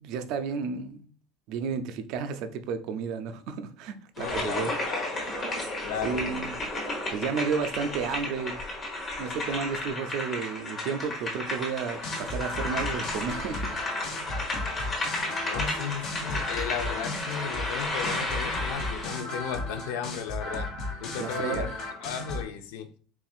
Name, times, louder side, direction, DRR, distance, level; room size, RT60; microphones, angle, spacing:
voice 1, 0.0-1.1 1.5-4.8 6.0-6.5 7.1-8.6 9.2-13.7 21.2-21.8, right 6 dB, 55° right, 0.4 m, -32 dB
voice 2, 4.2-5.2 5.8-6.4 15.4-20.7 21.0-21.7 22.0-22.9, left 7 dB, 85° left, 0.6 m, -35 dB
sound 1, 4.2-19.2, left 2 dB, 20° left, 1.0 m, -33 dB
sound 2, 11.9-22.4, left 2 dB, 55° left, 1.1 m, -35 dB
4.3 x 3.7 x 2.4 m
cardioid pair, 165°, 0 cm